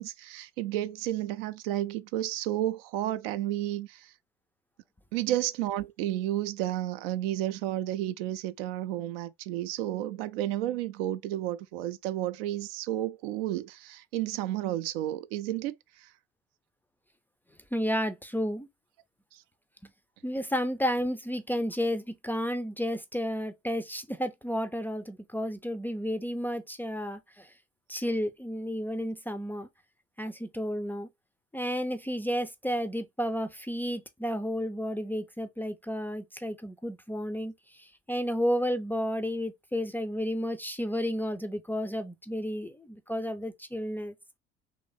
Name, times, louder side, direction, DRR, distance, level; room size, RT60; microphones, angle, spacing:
voice 1, 0.0-4.1 5.1-16.1 19.3-19.4, right 13 dB, 60° right, 0.5 m, -32 dB
voice 2, 17.7-18.7 20.2-27.5 27.9-29.7 30.2-31.1 31.5-44.1, equal, 5° left, 0.4 m, -32 dB
3.1 x 2.7 x 3.9 m
figure-of-eight pair, 55°, 33 cm